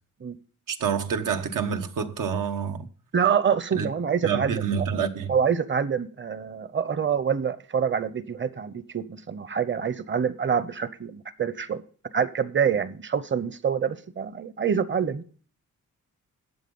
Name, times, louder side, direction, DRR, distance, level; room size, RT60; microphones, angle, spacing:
voice 1, 0.7-2.9 3.7-3.9 4.2-5.3, right 7 dB, 80° right, 1.3 m, -27 dB
voice 2, 3.1-4.6 5.3-11.8 12.1-15.2, right 7 dB, 35° right, 0.9 m, -26 dB
12.0 x 8.1 x 5.4 m
cardioid pair, 105°, 32 cm